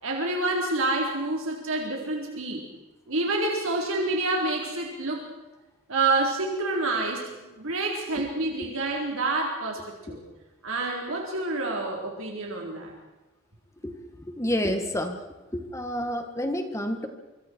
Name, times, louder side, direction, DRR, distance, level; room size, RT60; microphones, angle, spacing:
voice 1, 0.0-2.6 3.1-5.2 5.9-7.2 7.5-10.2 10.6-12.9, right 2 dB, 85° right, -1 dB, 4.1 m, -28 dB
voice 2, 13.8-15.3 15.5-17.1, equal, 15° left, 6 dB, 1.8 m, -30 dB
26.0 x 25.0 x 4.7 m, 1.1 s
head